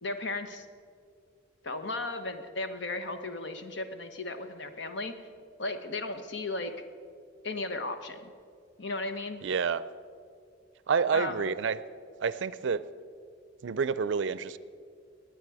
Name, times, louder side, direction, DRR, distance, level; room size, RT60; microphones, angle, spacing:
voice 1, 0.0-0.6 1.6-5.1 5.6-6.7 7.4-8.3 8.8-9.4 11.1-11.5, left 2 dB, 60° left, 8 dB, 1.0 m, -35 dB
voice 2, 9.4-9.8 10.9-11.8 12.2-12.8 13.6-14.6, right 5 dB, 65° right, 16 dB, 0.4 m, -28 dB
19.5 x 9.1 x 4.8 m, 2.3 s
head